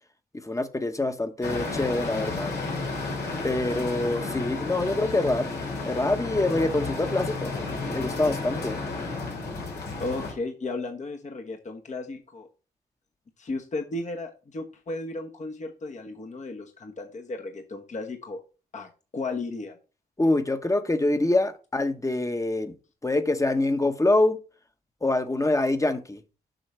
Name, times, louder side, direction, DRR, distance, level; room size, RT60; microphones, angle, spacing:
voice 1, 0.3-2.5 3.4-5.5 5.8-7.5 7.9-8.8 20.2-22.7 23.0-24.4 25.0-26.2, left 2 dB, 20° left, 1.0 m, -25 dB
sound 1, 1.4-10.3, left 3 dB, 85° left, 2.8 m, -32 dB
voice 2, 10.0-12.5 13.4-18.4 18.7-19.8, left 2 dB, 45° left, 1.2 m, -34 dB
7.8 x 5.6 x 3.2 m
cardioid pair, 60°, 17 cm